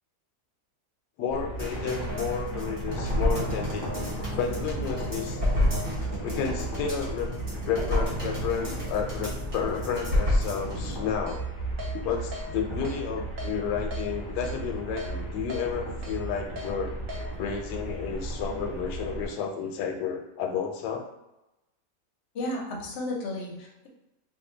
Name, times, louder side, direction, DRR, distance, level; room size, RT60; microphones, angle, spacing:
voice 1, 1.2-3.9 4.4-5.4 6.2-7.3 7.7-11.5 12.0-16.9 17.4-21.1, left 6 dB, 80° left, 3 dB, 1.2 m, -31 dB
sound 1, 1.3-19.3, right 2 dB, 20° left, 0.9 m, -36 dB
sound 2, 1.6-11.0 11.4-11.5, left 1 dB, 40° right, 1.0 m, -30 dB
Keyboard (musical), 11.3-11.4 11.8-11.9 12.3-12.5 12.8-13.0 13.4-13.5 13.9-14.0 14.4-14.6 15.0-15.1 15.5-15.6 16.0-16.2 16.6-16.7 17.1-17.2, left 2 dB, 65° right, 0.9 m, -39 dB
voice 2, 22.3-23.9, left 1 dB, 50° left, -1 dB, 0.8 m, -33 dB
2.7 x 2.6 x 3.8 m, 0.94 s
omnidirectional pair, 1.8 m